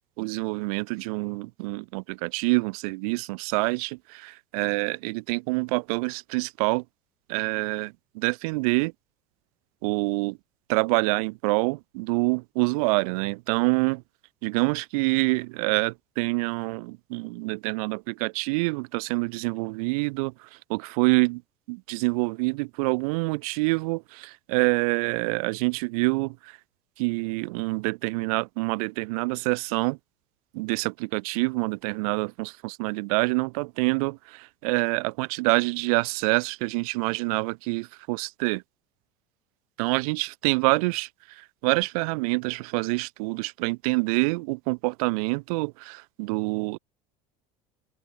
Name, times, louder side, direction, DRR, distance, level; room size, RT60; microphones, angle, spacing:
voice 1, 0.2-6.8 7.3-8.9 9.8-10.4 10.7-14.0 14.4-21.4 21.7-26.6 27.0-30.0 30.5-38.6 39.8-46.8, right 27 dB, 80° right, 1.2 m, -26 dB
open air
supercardioid pair, 115°, 18 cm